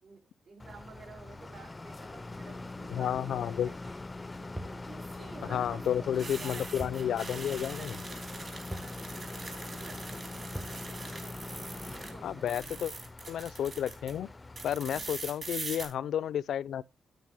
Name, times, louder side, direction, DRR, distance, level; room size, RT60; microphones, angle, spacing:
voice 1, 0.0-4.0 4.4-4.8 5.4-8.4 8.7-9.0 9.3-11.0 11.9-12.6 14.8-15.1, right 4 dB, 75° right, 6.4 m, -53 dB
sound 1, 0.6-15.3, left 2 dB, 20° left, 0.4 m, -43 dB
sound 2, 2.5-3.0 4.8-12.1 12.4-14.1 14.6-15.9, right 3 dB, 40° right, 4.1 m, -43 dB
voice 2, 2.9-3.7 5.5-7.9 12.2-12.9 13.3-14.3 14.6-16.8, left 10 dB, 85° left, 0.4 m, -31 dB
sound 3, 4.6-4.9 6.8-7.1 7.4-7.5 8.7-9.0 10.5-10.8, right 1 dB, 15° right, 0.7 m, -41 dB
9.4 x 9.1 x 3.5 m
cardioid pair, 100°, 0 cm